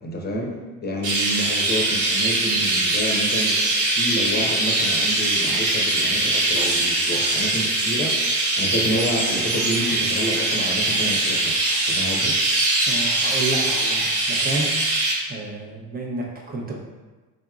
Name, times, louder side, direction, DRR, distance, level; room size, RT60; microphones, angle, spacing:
voice 1, 0.0-8.3 8.6-12.4, equal, 25° left, 0 dB, 0.9 m, -29 dB
Chirp tweet, 1.0-15.1, right 2 dB, 65° right, 1.3 m, -22 dB
voice 2, 12.9-14.7 15.3-16.8, right 2 dB, 20° right, -2 dB, 0.8 m, -30 dB
3.9 x 3.5 x 2.4 m, 1.2 s
supercardioid pair, 75°, 42 cm